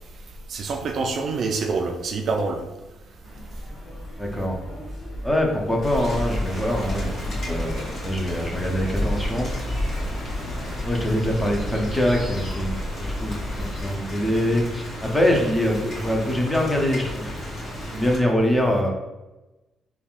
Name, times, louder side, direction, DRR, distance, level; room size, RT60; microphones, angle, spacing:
voice 1, 0.5-2.6, right 4 dB, 60° right, 3 dB, 0.3 m, -26 dB
sound 1, 3.2-12.4, left 1 dB, 45° left, 0.9 m, -35 dB
voice 2, 4.2-4.6 5.2-9.5 10.8-13.5 13.8-17.4 17.9-18.9, equal, 10° left, 0 dB, 0.6 m, -24 dB
Rain, 5.8-18.2, left 1 dB, 60° left, 1.2 m, -35 dB
sound 2, 5.9-13.9, left 1 dB, 80° left, 1.3 m, -32 dB
3.4 x 2.3 x 2.4 m, 1.1 s
cardioid pair, 90°, 0 cm